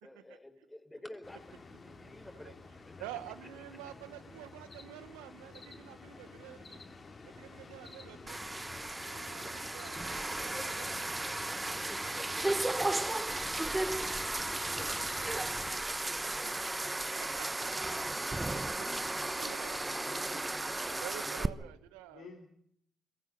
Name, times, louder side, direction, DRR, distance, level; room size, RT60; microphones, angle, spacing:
voice 1, 0.0-2.5 2.8-2.9 10.3-15.2 15.9-16.7 17.6-18.4 21.3-21.7, left 1 dB, 15° left, 7 dB, 4.7 m, -51 dB
sound 1, 1.2-15.7, left 3 dB, 45° left, 3.8 m, -50 dB
voice 2, 3.0-6.8 7.2-8.4 9.0-11.2 16.3-16.4 17.1-17.7 18.2-18.9 19.4-19.8 20.3-20.5 20.9-22.4, right 13 dB, 85° right, 12 dB, 1.2 m, -49 dB
sound 2, 8.3-21.5, right 2 dB, 20° right, 1.1 m, -35 dB
voice 3, 19.6-20.6 22.1-22.4, left 5 dB, 75° left, 0 dB, 3.5 m, -51 dB
23.0 x 14.5 x 9.0 m, 0.70 s
hypercardioid pair, 45°, 0 cm